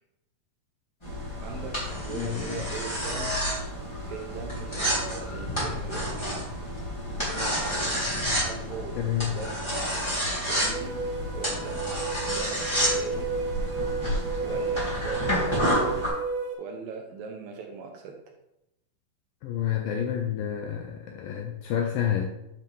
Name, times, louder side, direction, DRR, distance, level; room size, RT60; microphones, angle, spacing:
sound 1, 1.0-16.1, equal, 10° left, 2.3 m, -30 dB
voice 1, 1.4-3.4 4.1-6.4 7.3-8.0 8.4-9.0 9.3-11.0 11.3-11.8 12.3-13.3 14.4-16.0 16.6-18.2, right 5 dB, 70° right, 2 dB, 2.3 m, -40 dB
sound 2, 1.8-8.8, left 2 dB, 50° left, 3.1 m, -42 dB
voice 2, 2.1-2.6 9.0-9.4 19.4-22.2, left 10 dB, 85° left, 2 dB, 2.1 m, -29 dB
sound 3, 10.6-16.5, right 4 dB, 90° right, 3.6 m, -32 dB
12.0 x 5.8 x 3.4 m, 0.88 s
omnidirectional pair, 4.8 m